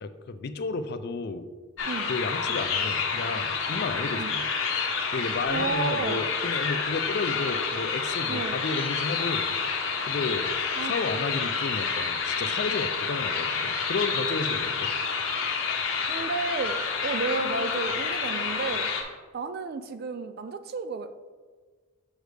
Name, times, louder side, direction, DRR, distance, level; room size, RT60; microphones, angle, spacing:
voice 1, 0.0-1.5 2.1-4.5 5.1-9.5 10.0-14.9, left 3 dB, 45° left, 10 dB, 0.4 m, -32 dB
sound 1, 1.8-19.0, left 5 dB, 65° left, 0.9 m, -29 dB
voice 2, 5.5-6.2 8.3-8.6 10.8-10.9 16.1-18.9 19.3-21.1, right 4 dB, 45° right, 10 dB, 0.3 m, -32 dB
6.4 x 6.2 x 3.3 m, 1.5 s
head